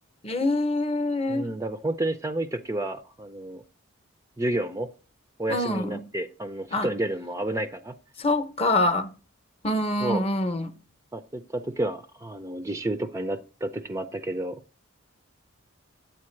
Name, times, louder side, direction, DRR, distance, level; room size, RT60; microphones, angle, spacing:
voice 1, 0.2-1.5 5.5-6.0 6.7-6.9 8.2-9.1 9.6-10.7, left 2 dB, 30° left, 0.7 m, -25 dB
voice 2, 1.3-3.6 4.4-4.9 5.4-8.0 10.0-10.2 11.1-14.6, right 1 dB, 15° right, 0.4 m, -30 dB
9.0 x 8.5 x 3.1 m
head